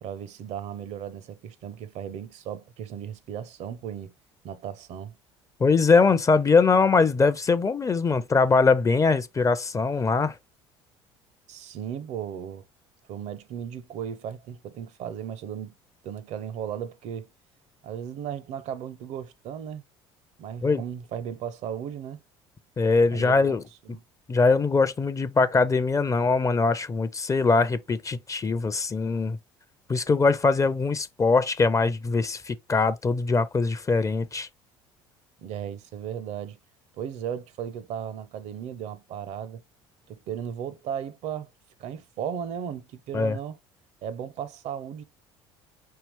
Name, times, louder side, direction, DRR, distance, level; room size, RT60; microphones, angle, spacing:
voice 1, 0.0-4.1 4.4-5.2 11.5-12.6 13.1-15.7 16.0-17.3 17.8-19.8 20.4-22.2 23.1-23.6 23.9-24.0 35.4-36.6 37.0-39.6 40.1-41.5 41.8-43.6 44.0-45.0, right 9 dB, 55° right, 0.6 m, -36 dB
voice 2, 5.6-10.3 20.6-20.8 22.8-23.6 23.9-24.0 24.3-29.4 29.9-34.5 43.1-43.4, left 4 dB, 25° left, 0.5 m, -22 dB
5.5 x 2.9 x 3.1 m
hypercardioid pair, 65°, 14 cm